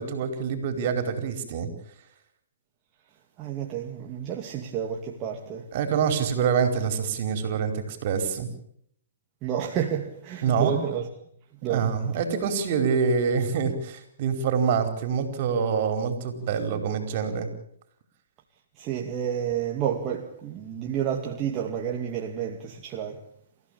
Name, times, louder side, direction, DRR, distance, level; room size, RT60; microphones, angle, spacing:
voice 1, 0.0-1.7 5.7-8.5 10.4-10.7 11.7-17.5, right 6 dB, 50° right, 4.8 m, -26 dB
voice 2, 3.4-5.7 9.4-11.1 11.6-11.9 18.8-23.2, right 9 dB, 30° right, 2.4 m, -30 dB
28.5 x 15.5 x 8.9 m
hypercardioid pair, 135°, 0 cm